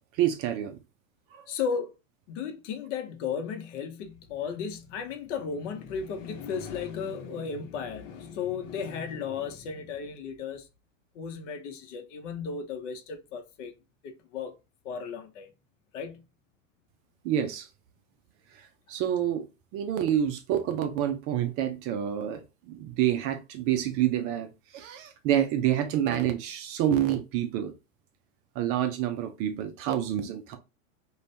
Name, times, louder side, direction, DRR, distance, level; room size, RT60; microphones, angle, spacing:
voice 1, 0.2-0.8 1.3-1.4 17.2-17.7 18.5-19.5 19.7-27.7 28.6-30.6, right 10 dB, 35° right, 0.4 m, -28 dB
voice 2, 1.5-1.9 2.3-10.7 11.1-13.7 14.0-14.5 14.8-15.5 15.9-16.2, left 6 dB, 60° left, 0.8 m, -35 dB
2.6 x 2.3 x 3.1 m
hypercardioid pair, 110°, 40 cm